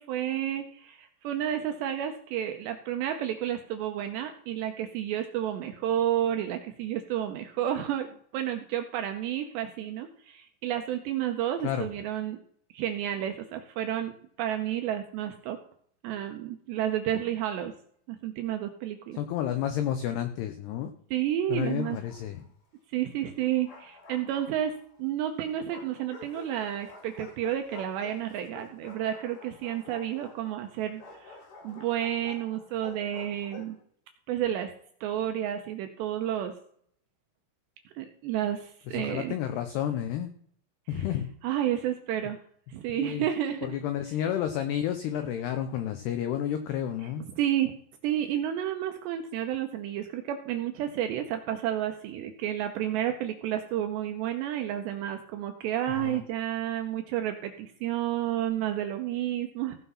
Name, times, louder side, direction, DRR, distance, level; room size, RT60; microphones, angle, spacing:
voice 1, 0.0-12.4 12.7-15.6 16.0-17.7 18.1-19.2 21.1-22.0 22.9-33.8 34.3-34.7 35.0-36.6 37.9-39.3 40.9-41.0 41.4-42.4 42.7-43.8 47.0-47.8 48.0-59.8, right 11 dB, 80° right, 6 dB, 2.6 m, -31 dB
voice 2, 19.2-20.9 21.5-22.4 38.9-40.3 40.9-41.3 43.0-43.3 43.6-47.3 56.0-56.2, left 10 dB, 90° left, 8 dB, 2.3 m, -31 dB
Bark, 21.5-22.5 23.4-25.0 25.7-33.8, left 2 dB, 55° left, 2.6 m, -49 dB
15.5 x 5.8 x 5.6 m, 0.62 s
omnidirectional pair, 5.8 m